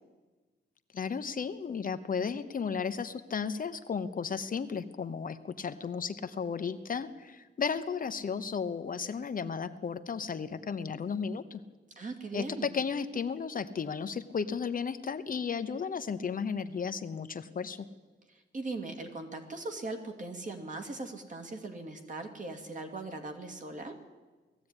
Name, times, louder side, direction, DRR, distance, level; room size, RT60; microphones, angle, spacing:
voice 1, 0.9-11.6 12.3-17.9, left 6 dB, 45° left, 9 dB, 0.9 m, -34 dB
voice 2, 12.0-12.7 18.3-24.0, right 2 dB, 40° right, 4 dB, 2.5 m, -40 dB
19.0 x 14.5 x 9.8 m, 1.3 s
wide cardioid pair, 175°, 19 cm